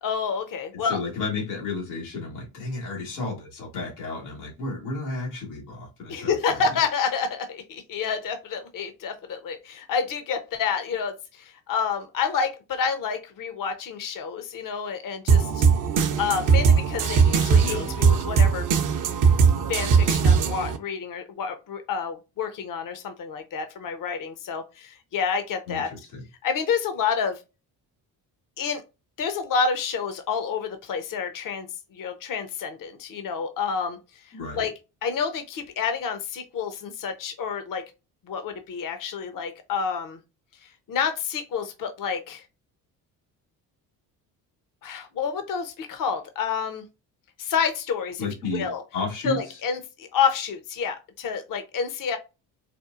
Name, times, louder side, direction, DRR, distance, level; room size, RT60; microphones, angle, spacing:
voice 1, 0.0-1.0 6.1-15.7 16.2-18.7 19.7-25.9 26.4-27.4 28.6-28.8 29.2-31.7 31.9-34.0 34.2-34.7 35.0-37.8 38.3-40.2 40.9-42.4 44.8-46.9 47.4-48.3 48.5-48.8 49.2-52.2, left 6 dB, 45° left, 0.8 m, -29 dB
voice 2, 0.8-6.6 17.6-17.9 25.7-26.2 34.3-34.6 48.2-49.6, left 3 dB, 90° left, 1.5 m, -32 dB
sound 1, 15.3-20.8, right 6 dB, 45° right, 0.7 m, -20 dB
4.4 x 2.3 x 2.4 m
hypercardioid pair, 55°, 45 cm